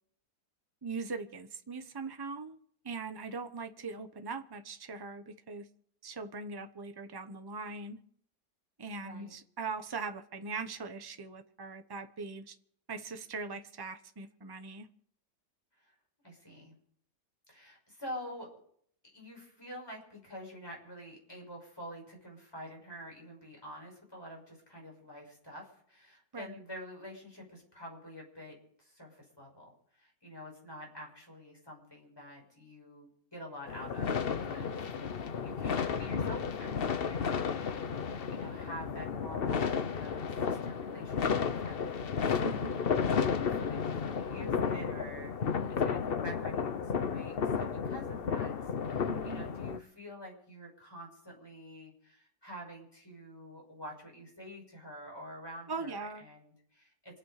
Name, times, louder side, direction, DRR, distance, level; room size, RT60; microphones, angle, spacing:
voice 1, 0.8-2.6 2.8-5.7 6.0-8.0 8.8-12.5 12.9-14.9 26.3-26.6 42.4-42.8 49.1-49.5 55.7-56.2, right 4 dB, 20° right, 0.8 m, -41 dB
voice 2, 16.2-16.7 17.5-18.6 19.1-34.8 35.0-42.3 43.0-57.2, equal, 15° left, 6.0 m, -47 dB
sound 1, 33.7-49.8, left 6 dB, 45° left, 0.8 m, -33 dB
27.0 x 9.3 x 5.0 m
omnidirectional pair, 1.8 m